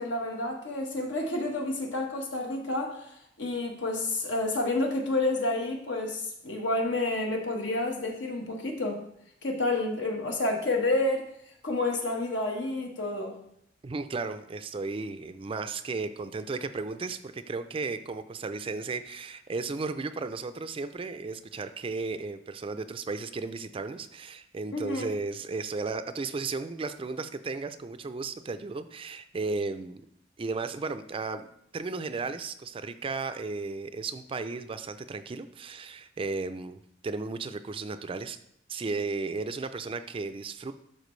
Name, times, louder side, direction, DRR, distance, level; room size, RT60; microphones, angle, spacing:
voice 1, 0.0-9.0 9.4-11.3 11.6-13.4 24.7-25.1, left 2 dB, 75° left, 2 dB, 1.3 m, -29 dB
voice 2, 13.8-30.0 30.4-31.5 31.7-38.4 38.7-40.7, right 3 dB, 30° right, 10 dB, 0.4 m, -34 dB
11.5 x 4.4 x 3.2 m, 0.72 s
head